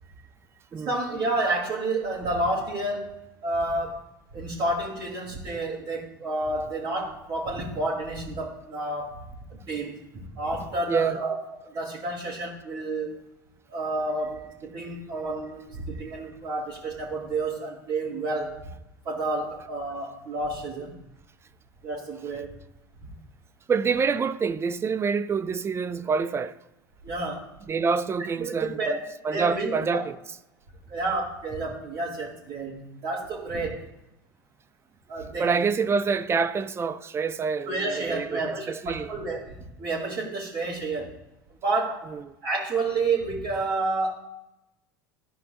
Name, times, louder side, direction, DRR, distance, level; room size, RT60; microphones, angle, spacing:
voice 1, 0.7-3.1 3.4-4.0 4.3-13.2 13.7-18.6 19.0-20.9 21.8-22.5 23.0-23.1 27.0-27.5 28.4-30.0 30.9-33.9 35.1-35.5 37.7-41.2 41.6-42.1 42.4-44.1, right 2 dB, 45° right, 3.4 m, -30 dB
voice 2, 10.9-11.2 16.1-16.2 23.7-26.6 27.7-30.2 35.4-39.1 42.1-42.3, right 5 dB, 20° right, 0.5 m, -27 dB
14.0 x 5.1 x 2.9 m
figure-of-eight pair, 75°, 11 cm